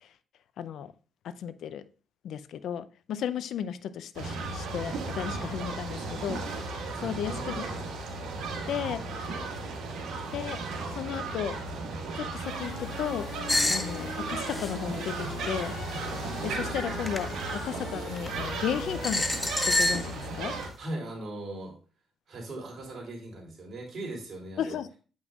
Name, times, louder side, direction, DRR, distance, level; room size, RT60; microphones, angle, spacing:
voice 1, 0.6-0.9 1.2-1.8 2.2-7.6 8.7-9.3 10.3-10.6 10.9-11.6 12.1-13.3 13.7-15.7 16.4-19.2 19.7-20.6 24.6-25.0, left 9 dB, 75° left, 14 dB, 0.4 m, -34 dB
sound 1, 4.1-20.7, right 3 dB, 80° right, 1.6 m, -35 dB
voice 2, 6.8-7.8 20.8-21.7 22.3-24.8, right 1 dB, 50° right, -1 dB, 3.0 m, -39 dB
sound 2, 12.4-19.8, left 2 dB, 55° left, 3.1 m, -42 dB
Wood crush, 13.5-13.9 14.5-14.7 16.2-16.4 17.1-17.2 18.2-18.3 19.0-20.1, left 2 dB, 15° left, 0.6 m, -26 dB
7.7 x 5.4 x 2.4 m, 0.37 s
cardioid pair, 90°, 0 cm